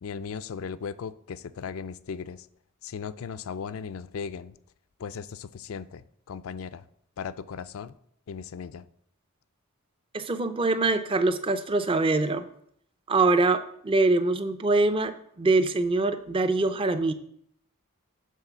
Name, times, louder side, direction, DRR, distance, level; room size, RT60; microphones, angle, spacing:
voice 1, 0.0-2.5 2.8-4.6 5.0-6.9 7.2-8.0 8.3-8.8, left 6 dB, 65° left, 15 dB, 0.4 m, -37 dB
voice 2, 10.1-12.5 13.1-17.1, right 3 dB, 25° right, 11 dB, 0.5 m, -24 dB
8.3 x 4.0 x 6.7 m, 0.67 s
head